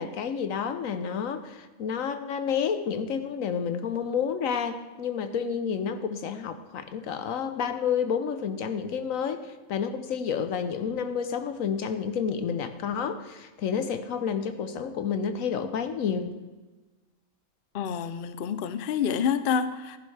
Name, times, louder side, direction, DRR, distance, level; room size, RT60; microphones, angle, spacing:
voice 1, 0.0-16.3, left 7 dB, 80° left, 10 dB, 1.2 m, -30 dB
voice 2, 17.7-20.0, left 7 dB, 55° left, 12 dB, 0.6 m, -28 dB
15.0 x 10.5 x 3.3 m, 1.2 s
omnidirectional pair, 1.4 m